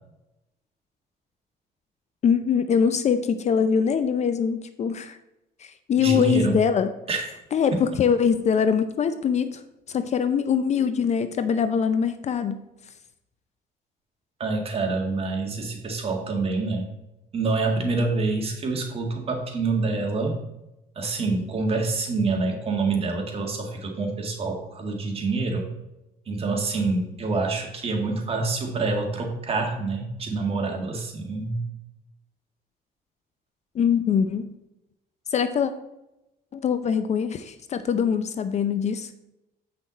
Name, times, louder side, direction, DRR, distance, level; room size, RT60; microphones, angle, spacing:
voice 1, 2.2-5.2 5.6-6.9 7.5-9.6 9.9-12.7 33.7-34.5 35.3-35.7 36.5-39.1, left 7 dB, 40° left, 10 dB, 0.5 m, -23 dB
voice 2, 5.9-6.6 7.1-7.2 14.4-16.9 17.3-20.4 21.0-25.7 26.3-31.6, right 3 dB, 35° right, 2 dB, 1.9 m, -26 dB
7.9 x 5.9 x 4.0 m, 0.91 s
cardioid pair, 110°, 17 cm